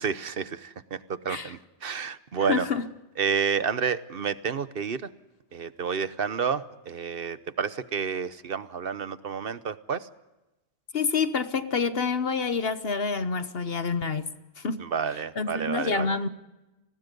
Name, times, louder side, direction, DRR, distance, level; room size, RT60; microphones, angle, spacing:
voice 1, 0.0-2.7 3.2-5.1 5.5-10.1 14.8-16.2, right 6 dB, 55° right, 1.1 m, -30 dB
voice 2, 2.4-2.9 10.9-14.8 15.4-16.3, left 5 dB, 60° left, 1.3 m, -28 dB
30.0 x 20.5 x 5.3 m
omnidirectional pair, 1.1 m